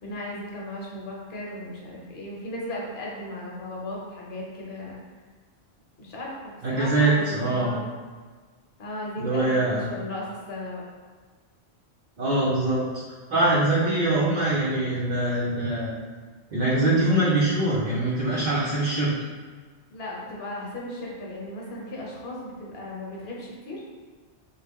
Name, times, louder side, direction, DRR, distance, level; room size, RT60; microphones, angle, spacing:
voice 1, 0.0-5.0 6.0-7.9 8.8-10.8 19.9-23.8, left 1 dB, 65° left, -4 dB, 1.1 m, -36 dB
voice 2, 6.6-7.8 9.2-9.9 12.2-12.8 13.3-16.0 16.5-19.1, right 2 dB, 50° right, -7 dB, 0.6 m, -23 dB
3.2 x 2.4 x 3.5 m, 1.4 s
omnidirectional pair, 1.1 m